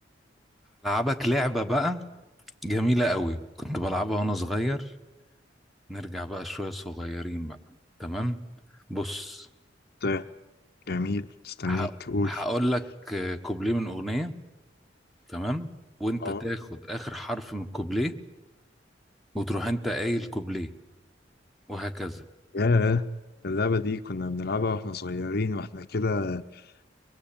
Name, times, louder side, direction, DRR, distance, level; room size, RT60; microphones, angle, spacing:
voice 1, 0.8-2.0 2.6-4.9 5.9-7.6 8.0-8.4 8.9-9.5 11.6-11.9 12.2-14.3 15.3-15.7 16.0-18.1 19.3-20.7 21.7-22.3, equal, ahead, 6 dB, 1.4 m, -29 dB
voice 2, 10.9-12.4 16.2-16.4 22.5-23.0 23.4-26.6, left 3 dB, 55° left, 9 dB, 0.8 m, -28 dB
24.0 x 21.0 x 8.8 m, 1.0 s
head